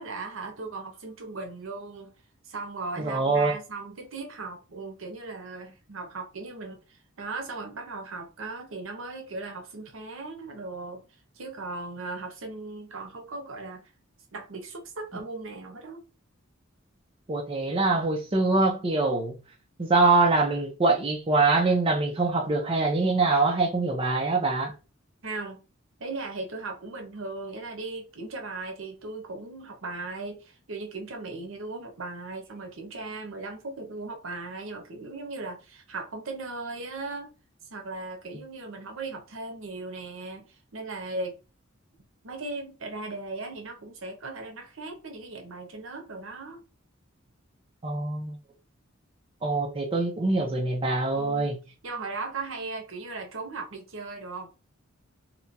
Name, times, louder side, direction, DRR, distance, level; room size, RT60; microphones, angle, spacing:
voice 1, 0.0-2.1 2.4-6.8 7.2-11.0 11.3-13.8 14.3-16.0 25.2-25.6 26.0-37.3 37.7-41.4 42.2-46.6 51.2-51.5 51.8-54.5, right 3 dB, 70° right, 0.8 m, -37 dB
voice 2, 3.0-3.6 17.3-19.3 19.8-24.7 47.8-48.4 49.4-51.6, right 3 dB, 25° right, 0.4 m, -24 dB
2.9 x 2.2 x 2.5 m
head